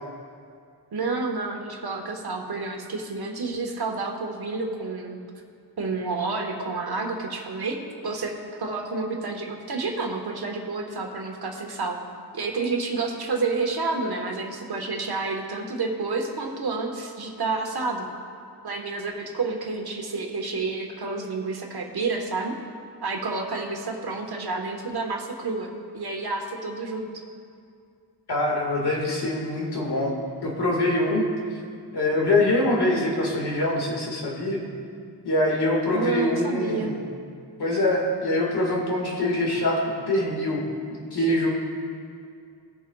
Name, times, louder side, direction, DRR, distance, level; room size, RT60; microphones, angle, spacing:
voice 1, 0.9-5.2 5.8-12.0 12.3-18.1 18.6-22.6 23.0-27.2 35.9-36.9, right 3 dB, 70° right, 2 dB, 1.3 m, -29 dB
voice 2, 28.3-30.2 30.4-31.2 31.9-34.6 35.2-37.0 37.6-39.8 40.1-40.6 40.9-41.5, left 1 dB, 75° left, -1 dB, 1.8 m, -24 dB
18.5 x 6.6 x 2.3 m, 2.3 s
wide cardioid pair, 105°, 40 cm